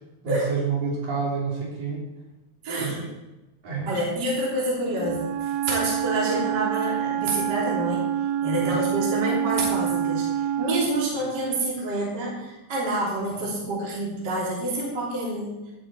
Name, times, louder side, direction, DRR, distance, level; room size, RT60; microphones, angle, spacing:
voice 1, 0.2-2.0 2.8-3.0 3.6-4.0 8.6-8.8, right 5 dB, 60° right, -5 dB, 4.9 m, -28 dB
voice 2, 2.6-3.0 3.9-8.0 8.4-15.6, right 1 dB, 30° right, -5 dB, 3.5 m, -27 dB
Wind instrument woodwind instrument, 4.9-11.0, right 10 dB, 80° right, 2.1 m, -27 dB
17.0 x 7.7 x 4.3 m, 1.0 s
omnidirectional pair, 4.6 m